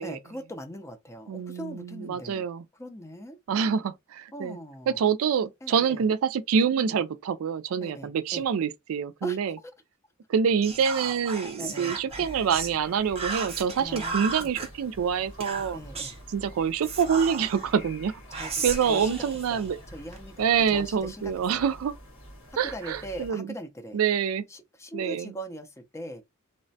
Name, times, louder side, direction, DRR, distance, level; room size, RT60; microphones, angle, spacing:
voice 1, 0.0-2.5 2.8-3.4 4.3-5.0 5.6-6.1 6.8-7.0 7.8-8.4 9.2-9.4 11.6-12.4 13.8-14.5 15.7-16.1 18.3-19.2 19.5-21.7 22.6-24.0 24.5-26.2, equal, 15° left, 0.4 m, -40 dB
voice 2, 1.3-2.6 3.5-4.6 4.9-9.6 10.3-15.8 16.3-19.8 20.4-21.9 22.6-23.5 23.9-24.5 24.9-25.3, right 7 dB, 80° right, 0.4 m, -26 dB
Whispering, 10.6-12.7 13.2-14.7 15.4-16.2 16.8-17.7 18.3-20.2, right 4 dB, 30° right, 0.7 m, -35 dB
sound 1, 12.1-23.3, equal, 80° left, 1.3 m, -47 dB
3.1 x 2.1 x 2.6 m
head